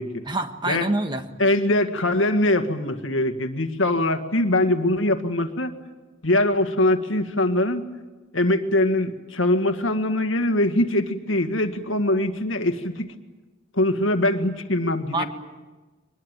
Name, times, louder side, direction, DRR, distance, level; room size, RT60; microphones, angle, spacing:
voice 1, 0.3-1.2 15.1-15.2, right 2 dB, 25° right, 7 dB, 1.4 m, -25 dB
voice 2, 1.4-5.7 6.2-7.9 8.3-13.1 13.7-15.3, left 1 dB, 75° left, 7 dB, 1.9 m, -22 dB
24.0 x 20.5 x 9.2 m, 1.2 s
head